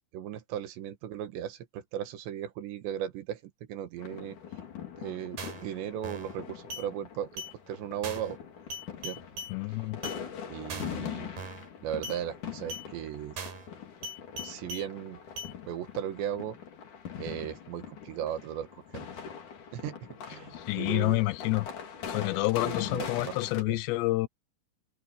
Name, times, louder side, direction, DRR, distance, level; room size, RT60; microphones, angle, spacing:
voice 1, 0.1-3.4 3.7-4.4 5.0-8.4 9.0-9.2 10.5-11.3 11.8-13.4 14.4-15.2 15.7-16.6 17.2-19.1 19.7-21.2 22.6-23.3 23.7-23.8, right 10 dB, 85° right, 3.8 m, -37 dB
sound 1, 4.0-23.6, left 8 dB, 50° left, 4.0 m, -42 dB
sound 2, 5.4-5.7 6.0-6.3 6.7-6.9 7.4-7.5 8.0-8.3 8.7-9.5 10.0-10.2 10.7-11.0 11.4-11.7 12.0-12.2 12.7-12.9 13.4-13.7 14.0-14.9 15.4-15.5, equal, 60° right, 5.8 m, -39 dB
voice 2, 9.5-10.0 20.6-21.7 22.1-24.3, left 20 dB, 85° left, 3.0 m, -28 dB
omnidirectional pair, 4.9 m